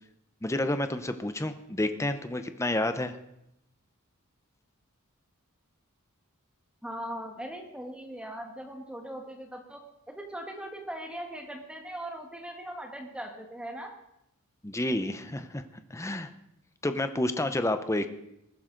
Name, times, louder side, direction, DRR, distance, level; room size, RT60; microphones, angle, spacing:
voice 1, 0.4-3.1 14.6-15.6 15.9-16.3 16.8-18.1, left 1 dB, 15° left, 9 dB, 0.7 m, -29 dB
voice 2, 6.8-9.8 10.1-13.9, right 1 dB, 5° right, 2 dB, 1.5 m, -40 dB
20.0 x 11.0 x 3.9 m, 0.83 s
head